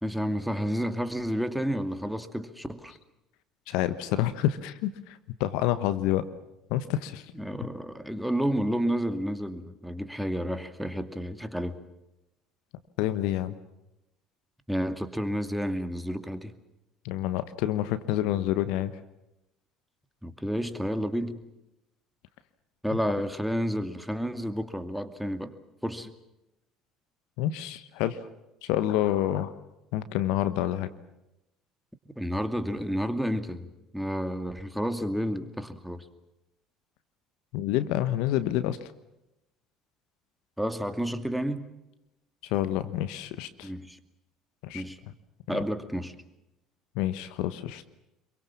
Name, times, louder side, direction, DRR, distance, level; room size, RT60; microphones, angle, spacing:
voice 1, 0.0-2.9 7.3-11.8 14.7-16.5 20.2-21.4 22.8-25.5 25.8-26.1 32.2-36.1 40.6-41.7 43.6-44.0 44.7-45.0 45.5-46.1, equal, ahead, 9 dB, 2.5 m, -30 dB
voice 2, 3.7-6.2 6.7-7.2 13.0-13.6 17.0-18.9 27.4-28.2 28.6-29.5 29.9-30.9 37.5-38.9 42.4-43.7 44.6-44.8 45.5-45.6 46.9-47.9, left 13 dB, 70° left, 13 dB, 1.2 m, -28 dB
26.0 x 23.5 x 7.3 m, 0.91 s
hypercardioid pair, 60°, 0 cm